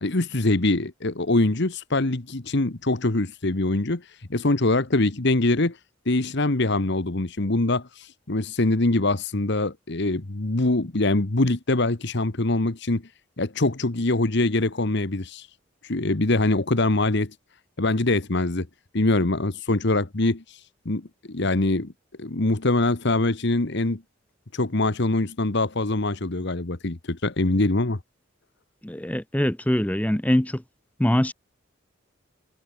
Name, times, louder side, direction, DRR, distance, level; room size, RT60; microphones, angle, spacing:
voice 1, 0.0-5.8 6.0-13.0 13.4-15.5 15.8-17.3 17.8-18.7 18.9-21.9 22.2-24.0 24.5-28.0, left 2 dB, 55° left, 1.3 m, -23 dB
voice 2, 28.8-30.6 31.0-31.3, equal, 5° left, 0.8 m, -23 dB
head